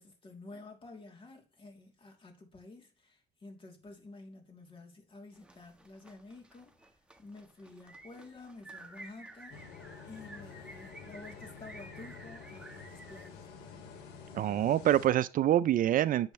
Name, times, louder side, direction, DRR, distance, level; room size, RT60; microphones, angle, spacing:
voice 1, 0.0-6.9 7.2-9.6 10.0-13.9, left 3 dB, 30° left, 3.0 m, -51 dB
sound 1, 5.3-13.3, right 2 dB, 5° right, 1.4 m, -53 dB
sound 2, 9.5-15.1, left 5 dB, 90° left, 2.9 m, -49 dB
voice 2, 14.3-16.3, right 12 dB, 55° right, 0.5 m, -26 dB
10.5 x 7.8 x 3.2 m
cardioid pair, 110°, 17 cm